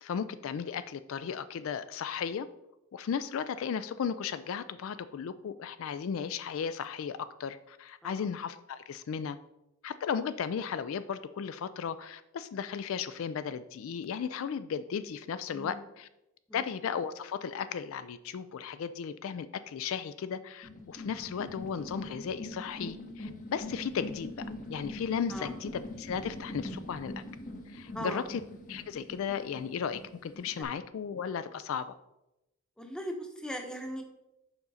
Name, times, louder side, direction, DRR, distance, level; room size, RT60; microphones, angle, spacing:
voice 1, 0.0-2.5 2.9-9.4 9.8-16.1 16.5-24.3 24.7-27.1 27.7-28.4 28.7-31.9, left 7 dB, 65° left, 13 dB, 0.3 m, -35 dB
voice 2, 15.5-15.8 16.5-16.6 25.3-25.5 27.9-28.2 32.8-34.0, equal, 5° left, 3 dB, 0.8 m, -39 dB
sound 1, 20.6-30.6, left 1 dB, 40° left, 0.9 m, -43 dB
7.1 x 5.0 x 4.1 m, 0.90 s
head